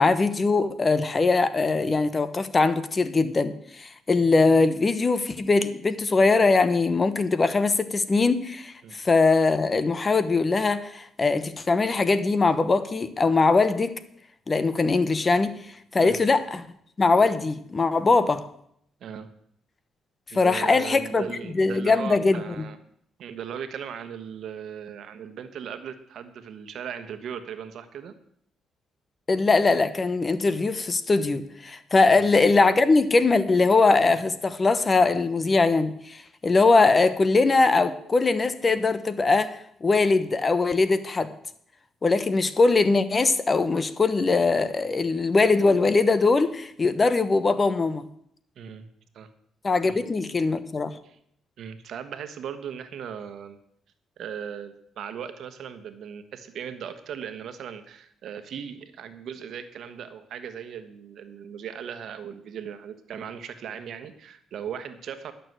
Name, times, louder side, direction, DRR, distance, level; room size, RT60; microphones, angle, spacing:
voice 1, 0.0-13.9 14.5-15.5 15.9-16.7 17.0-18.4 20.3-21.2 21.5-22.4 29.3-41.3 42.0-48.1 49.6-50.9, left 3 dB, 30° left, 13 dB, 1.0 m, -21 dB
voice 2, 20.3-22.8 23.2-28.1 32.1-32.3 48.6-48.9 49.1-49.3 49.8-50.0 51.0-51.2 51.6-53.6 54.2-65.3, right 8 dB, 70° right, 9 dB, 1.2 m, -38 dB
11.0 x 6.8 x 7.9 m, 0.69 s
cardioid pair, 90°, 0 cm